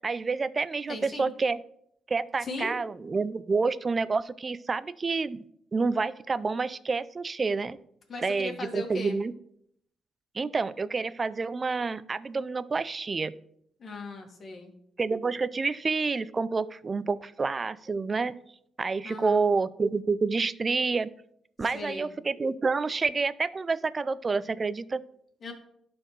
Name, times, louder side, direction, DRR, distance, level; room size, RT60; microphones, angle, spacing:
voice 1, 0.0-1.6 2.1-5.4 5.7-7.8 8.2-9.3 10.3-13.3 15.0-18.4 18.8-21.1 21.6-25.0, right 4 dB, 35° right, 16 dB, 0.4 m, -28 dB
voice 2, 0.9-1.3 2.4-2.8 8.1-9.2 13.8-14.7 19.0-19.4 21.6-22.1 25.4-25.5, left 2 dB, 50° left, 2 dB, 2.1 m, -38 dB
12.0 x 4.4 x 3.3 m, 0.71 s
supercardioid pair, 65°, 0 cm